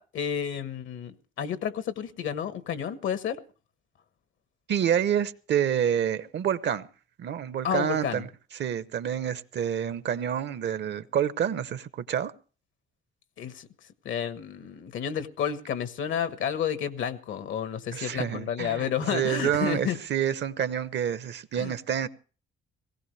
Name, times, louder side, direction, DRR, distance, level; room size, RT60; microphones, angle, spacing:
voice 1, 0.0-3.4 7.6-8.2 13.4-13.7 14.0-20.0 21.5-21.7, left 8 dB, 75° left, 1.3 m, -31 dB
voice 2, 4.7-6.9 7.2-8.3 8.5-12.3 17.9-22.1, right 9 dB, 60° right, 0.9 m, -28 dB
18.5 x 16.5 x 3.3 m
cardioid pair, 90°, 20 cm